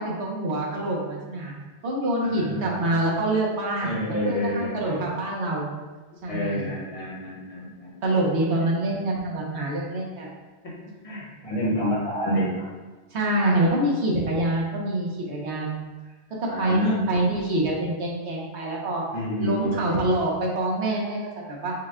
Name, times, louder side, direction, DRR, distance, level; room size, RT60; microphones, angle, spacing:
voice 1, 0.0-1.5 1.8-5.7 6.2-6.7 8.0-10.3 13.1-15.8 16.4-19.0 19.4-21.7, right 1 dB, 80° right, -3 dB, 1.2 m, -26 dB
voice 2, 2.2-3.0 3.8-5.0 6.3-7.9 10.6-10.7 11.0-12.7 16.5-17.0 19.1-20.0, equal, 35° left, -5 dB, 1.1 m, -28 dB
5.2 x 2.2 x 3.6 m, 1.3 s
omnidirectional pair, 1.1 m